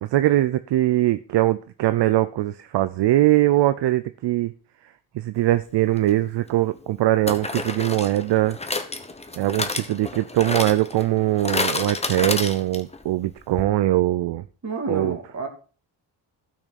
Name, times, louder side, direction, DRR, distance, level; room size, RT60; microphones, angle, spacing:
voice 1, 0.0-4.5 5.1-8.6 9.4-14.4 14.9-15.2, right 14 dB, 65° right, 12 dB, 0.6 m, -21 dB
sound 1, 6.0-6.1 7.3-13.0 13.3-13.4 13.6-13.7, left 3 dB, 15° left, 1.1 m, -30 dB
voice 2, 14.6-15.5, right 3 dB, 35° right, 4 dB, 2.6 m, -29 dB
12.0 x 6.2 x 4.2 m, 0.36 s
cardioid pair, 90°, 45 cm